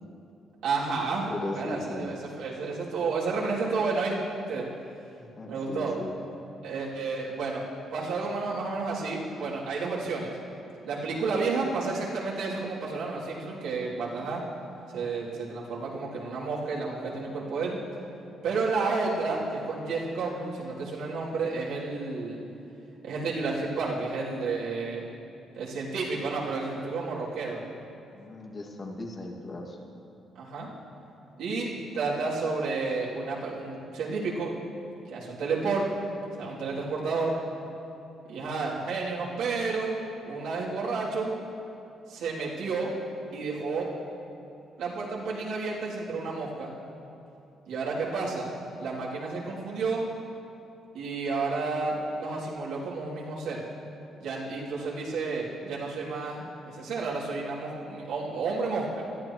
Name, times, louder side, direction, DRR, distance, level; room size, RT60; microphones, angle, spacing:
voice 1, 0.6-1.3 1.5-4.1 4.5-4.7 5.5-5.9 6.6-7.6 7.9-10.3 10.8-14.4 14.9-17.8 18.4-22.4 23.0-25.0 25.6-27.6 30.4-30.7 31.4-34.5 35.1-35.9 36.4-37.4 38.3-40.0 40.2-41.3 42.1-42.9 43.3-43.9 44.8-46.7 47.7-48.5 48.8-50.0 50.9-53.6 54.2-59.0, right 4 dB, 85° right, -6 dB, 3.1 m, -31 dB
voice 2, 1.3-2.1 5.2-6.2 28.1-29.8, left 2 dB, 40° left, 0 dB, 2.2 m, -37 dB
21.0 x 13.5 x 3.2 m, 2.7 s
cardioid pair, 90°, 0 cm